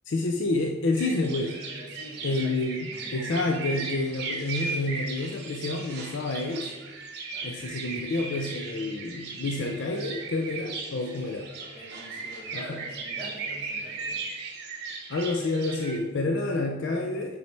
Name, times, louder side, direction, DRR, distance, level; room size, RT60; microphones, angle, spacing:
voice 1, 0.1-1.6 2.2-2.8 3.1-6.7 7.4-11.5 12.5-12.8 15.1-17.4, left 2 dB, 55° left, 3 dB, 0.4 m, -29 dB
sound 1, 1.0-16.0, right 4 dB, 50° right, 1.0 m, -37 dB
voice 2, 1.7-3.5 7.3-7.5 11.1-11.3 11.7-14.2, right 1 dB, 20° left, -3 dB, 1.3 m, -46 dB
6.0 x 4.6 x 4.3 m, 1.2 s
head